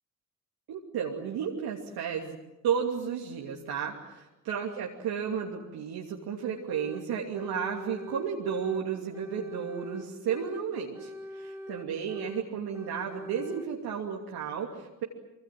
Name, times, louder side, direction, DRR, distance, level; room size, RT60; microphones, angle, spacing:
voice 1, 0.7-2.4 2.6-15.0, right 7 dB, 70° right, -1 dB, 2.8 m, -33 dB
sound 1, 6.7-7.1 7.3-8.8 9.1-10.7 10.9-12.5 12.7-13.7, equal, 5° right, 2.6 m, -43 dB
25.5 x 24.5 x 7.7 m, 1.0 s
hypercardioid pair, 45°, 38 cm